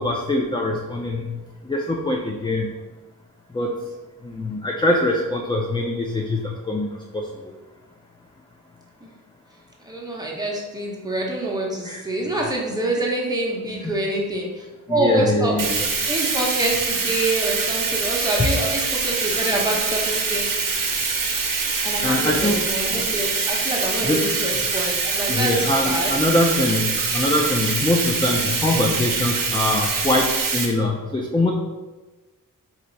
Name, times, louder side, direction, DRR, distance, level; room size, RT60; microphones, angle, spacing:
voice 1, 0.0-1.4 1.6-2.7 3.5-3.8 4.2-7.3 11.8-12.0 13.8-13.9 14.9-15.9 18.4-18.5 22.0-22.6 24.0-24.3 25.3-31.5, left 1 dB, 15° left, 0 dB, 0.4 m, -23 dB
voice 2, 9.8-15.6 16.1-20.5 21.8-25.6 25.8-26.1, right 1 dB, 10° right, -3 dB, 1.0 m, -26 dB
Bathtub (filling or washing), 15.6-30.7, right 4 dB, 70° right, 0.8 m, -24 dB
4.4 x 2.7 x 4.0 m, 1.2 s
wide cardioid pair, 110°, 34 cm